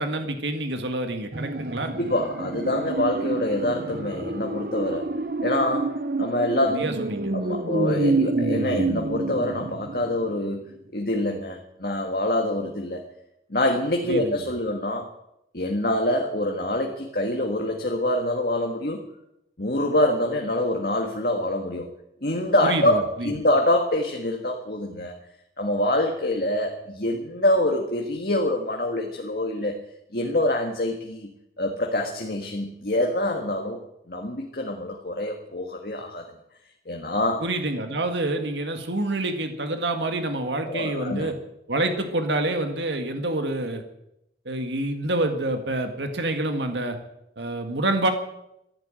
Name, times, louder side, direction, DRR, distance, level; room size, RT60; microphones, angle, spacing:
voice 1, 0.0-1.9 6.7-7.3 14.1-14.5 22.6-23.3 37.4-41.4 41.7-43.8 44.5-47.0 47.4-48.1, right 2 dB, 85° right, 6 dB, 2.0 m, -27 dB
sound 1, 1.3-10.4 10.8-10.9, right 2 dB, 55° right, 0.9 m, -28 dB
voice 2, 2.0-5.1 5.4-5.9 6.2-6.8 7.3-10.6 10.9-13.0 13.5-15.1 15.5-19.0 19.6-21.9 22.2-25.2 25.6-29.8 30.1-31.3 31.6-33.8 34.1-36.2 36.9-37.5 40.7-41.3, left 1 dB, 55° left, 2 dB, 1.7 m, -25 dB
14.0 x 11.5 x 9.0 m, 0.82 s
head